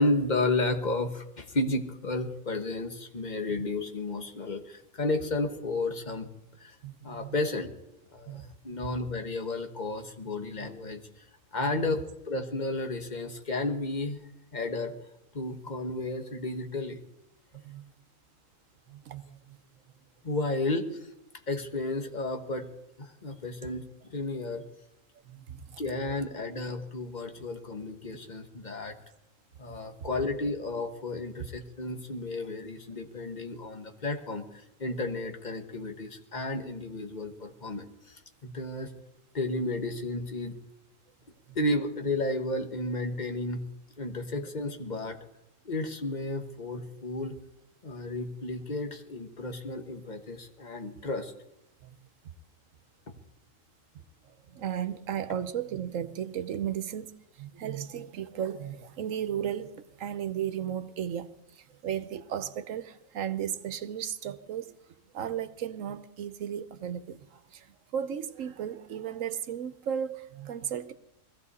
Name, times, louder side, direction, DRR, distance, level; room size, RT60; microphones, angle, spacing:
voice 1, 0.0-6.3 6.6-6.8 7.0-7.7 8.1-11.0 11.5-14.2 14.5-14.9 15.3-17.0 20.2-21.1 21.5-22.7 23.0-24.6 25.8-28.9 29.6-38.9 39.3-40.5 41.5-43.6 44.0-45.2 45.6-47.4 47.8-51.3, left 2 dB, 35° left, 1.3 m, -32 dB
voice 2, 6.8-7.4 8.3-8.5 10.6-10.7 11.6-12.0 17.6-17.9 18.9-19.6 25.3-25.8 27.4-27.5 30.0-30.1 41.5-41.6 44.3-44.4 51.8-52.0 54.5-57.1 57.4-64.7 65.1-70.9, right 9 dB, 75° right, 1.2 m, -35 dB
21.0 x 15.0 x 4.2 m
omnidirectional pair, 1.4 m